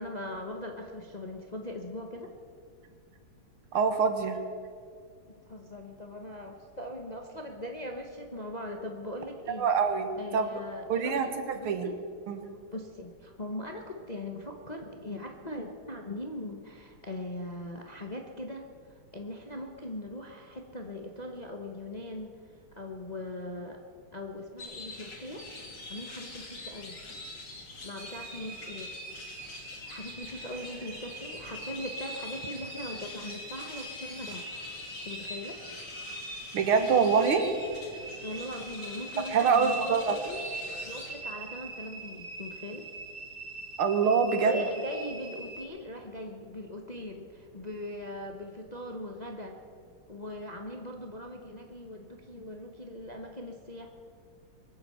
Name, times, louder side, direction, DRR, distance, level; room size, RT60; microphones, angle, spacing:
voice 1, 0.0-2.3 5.3-9.6 10.2-11.9 12.7-22.3 22.8-23.8 24.1-25.5 25.9-27.0 27.8-29.0 29.9-34.4 35.0-35.6 38.2-40.4 40.8-42.8 44.4-49.6 50.1-53.9, left 1 dB, 30° left, 2 dB, 0.8 m, -40 dB
voice 2, 3.7-4.4 9.6-10.5 10.9-11.9 12.3-12.5 36.5-37.5 39.3-40.2 43.8-44.6, right 5 dB, 80° right, 7 dB, 2.2 m, -25 dB
sound 1, 24.6-41.1, left 2 dB, 55° left, 3.1 m, -44 dB
sound 2, 28.0-45.6, right 2 dB, 55° right, 3.4 m, -43 dB
22.5 x 7.9 x 7.8 m, 2.2 s
omnidirectional pair, 2.3 m